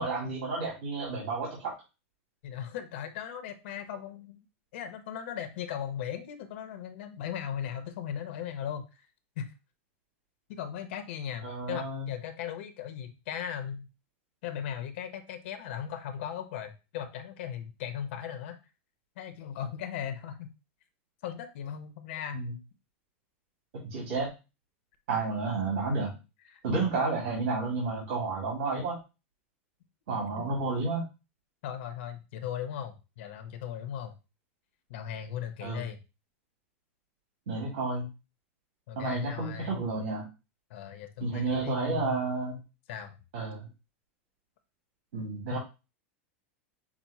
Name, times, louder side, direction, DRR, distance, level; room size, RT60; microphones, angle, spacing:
voice 1, 0.0-1.7 11.4-12.1 22.3-22.5 23.7-24.3 25.1-26.2 26.6-29.0 30.1-31.0 35.6-35.8 37.5-38.1 39.0-40.3 41.2-42.6 43.3-43.7 45.1-45.6, right 3 dB, 70° right, -4 dB, 2.2 m, -31 dB
voice 2, 2.4-4.5 4.7-8.9 9.4-9.5 10.5-13.9 14.4-18.6 19.2-20.5 21.2-22.4 26.5-26.9 30.2-30.4 31.6-34.1 34.9-36.0 38.9-39.8 40.7-42.3 42.9-43.2 45.5-45.6, left 9 dB, 60° left, 8 dB, 0.8 m, -38 dB
6.0 x 2.1 x 4.1 m, 0.29 s
supercardioid pair, 160°, 7 cm